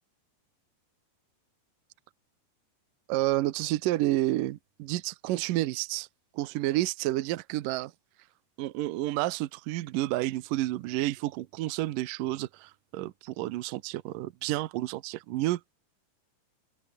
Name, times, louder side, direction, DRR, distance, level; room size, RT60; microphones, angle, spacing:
voice 1, 3.1-6.1 6.3-7.9 8.6-15.6, right 16 dB, 75° right, 2.0 m, -30 dB
omnidirectional pair, 5.0 m